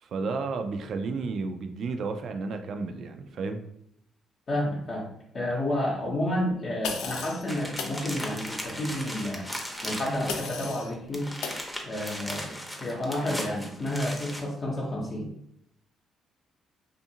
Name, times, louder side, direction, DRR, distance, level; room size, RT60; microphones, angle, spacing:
voice 1, 0.0-3.6, right 4 dB, 65° right, 7 dB, 0.3 m, -32 dB
voice 2, 4.5-9.5 9.8-11.3 11.8-15.3, left 1 dB, 50° left, -4 dB, 0.7 m, -30 dB
sound 1, 6.8-7.4 7.8-8.0 10.3-10.9 11.4-11.6, left 5 dB, 90° left, 0.3 m, -34 dB
sound 2, 7.5-10.7 10.9-14.4, equal, 5° left, 0.6 m, -37 dB
2.6 x 2.4 x 2.7 m, 0.73 s
cardioid pair, 80°, 0 cm